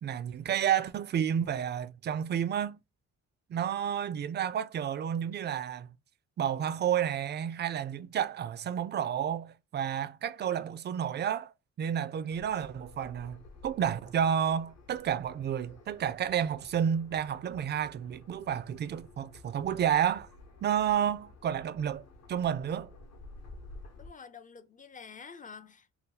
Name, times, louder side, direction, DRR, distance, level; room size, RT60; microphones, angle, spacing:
voice 1, 0.0-2.8 3.5-5.9 6.4-11.5 11.8-20.3 20.6-22.0 22.3-22.9, right 9 dB, 35° right, 0.4 m, -31 dB
sound 1, 12.3-24.1, left 2 dB, 55° left, 0.9 m, -53 dB
voice 2, 24.0-25.9, left 5 dB, 25° left, 0.4 m, -48 dB
2.8 x 2.2 x 3.7 m
cardioid pair, 90°, 30 cm